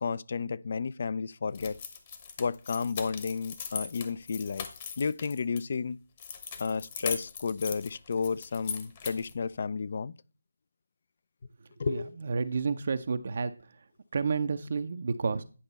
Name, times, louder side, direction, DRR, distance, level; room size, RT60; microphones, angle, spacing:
voice 1, 0.0-1.8 2.4-4.7 5.0-6.0 6.6-10.1 11.8-12.2, left 5 dB, 45° left, 0.4 m, -32 dB
sound 1, 1.5-5.6 6.2-9.4, left 6 dB, 30° left, 1.1 m, -40 dB
voice 2, 11.9-13.5 14.1-15.4, right 5 dB, 50° right, 0.6 m, -30 dB
10.0 x 5.2 x 4.1 m
figure-of-eight pair, 160°, 0 cm